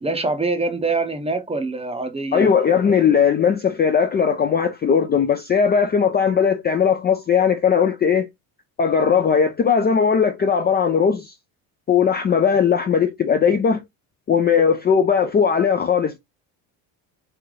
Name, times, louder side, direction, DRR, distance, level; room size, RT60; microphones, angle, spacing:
voice 1, 0.0-2.5, right 3 dB, 15° right, 0.6 m, -24 dB
voice 2, 2.3-8.3 8.8-11.3 11.9-13.8 14.3-16.2, left 6 dB, 25° left, 0.4 m, -18 dB
3.3 x 2.7 x 3.6 m
supercardioid pair, 95°, 43 cm